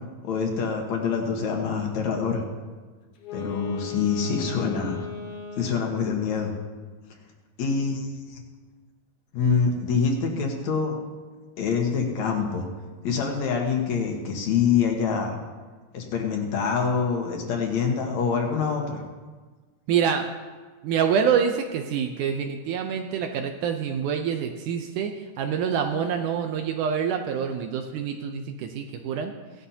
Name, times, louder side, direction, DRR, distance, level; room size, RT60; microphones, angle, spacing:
voice 1, 0.2-2.4 3.3-5.0 5.6-6.5 7.6-8.4 9.3-11.0 11.6-12.7 13.0-15.3 15.9-19.0, left 6 dB, 60° left, 2 dB, 2.3 m, -25 dB
Wind instrument woodwind instrument, 3.2-6.1, left 7 dB, 85° left, 1.3 m, -36 dB
voice 2, 19.9-20.3 20.8-29.3, right 7 dB, 80° right, 5 dB, 1.8 m, -26 dB
17.5 x 11.5 x 2.8 m, 1.4 s
omnidirectional pair, 4.2 m